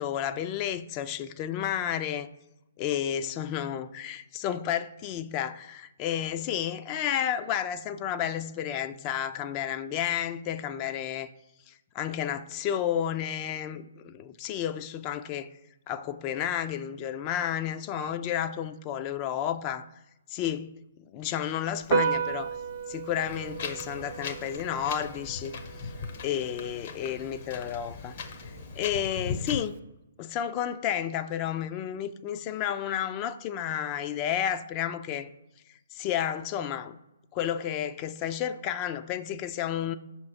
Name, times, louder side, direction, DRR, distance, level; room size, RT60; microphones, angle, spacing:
voice 1, 0.0-2.3 2.8-11.3 11.7-15.5 15.9-19.8 20.3-20.7 21.1-22.5 22.9-25.6 26.2-28.1 28.8-29.7 30.2-35.3 35.9-37.0 37.3-40.0, left 10 dB, 30° left, 0.4 m, -31 dB
Piano, 21.8-29.8, right 6 dB, 40° right, 0.5 m, -35 dB
Wind, 23.2-29.6, left 5 dB, 50° left, 0.7 m, -39 dB
5.9 x 2.9 x 5.6 m
figure-of-eight pair, 130°, 0 cm